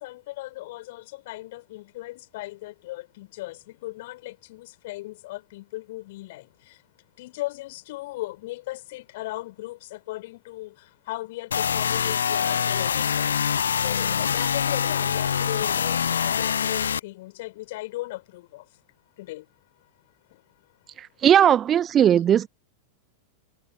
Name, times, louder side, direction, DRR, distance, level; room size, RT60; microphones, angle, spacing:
voice 1, 0.0-6.8 7.2-13.4 13.7-18.8 19.2-19.5 20.3-20.4, left 18 dB, 50° left, 4.4 m, -37 dB
sound 1, 11.5-17.0, left 7 dB, 70° left, 0.8 m, -24 dB
voice 2, 21.0-22.5, right 10 dB, 25° right, 1.2 m, -18 dB
figure-of-eight pair, 90°, 0 cm